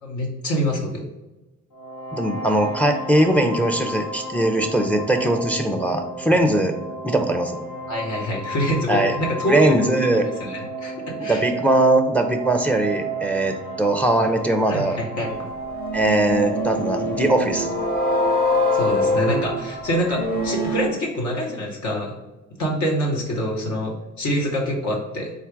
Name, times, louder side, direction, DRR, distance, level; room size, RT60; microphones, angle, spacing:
voice 1, 0.0-1.0 6.3-6.4 7.9-10.1 10.4-11.4 14.7-15.3 18.7-22.2 22.6-25.3, equal, 70° left, -1 dB, 1.0 m, -25 dB
sound 1, 1.7-20.5, right 3 dB, 85° left, 1.2 m, -33 dB
voice 2, 2.1-6.7 7.0-7.6 8.9-9.1 9.4-10.3 11.2-15.0 15.9-17.7, right 1 dB, 5° left, 4 dB, 0.4 m, -20 dB
sound 2, 15.6-20.9, left 1 dB, 30° left, 0.9 m, -24 dB
3.8 x 2.4 x 4.5 m, 1.0 s
cardioid pair, 90°, 30 cm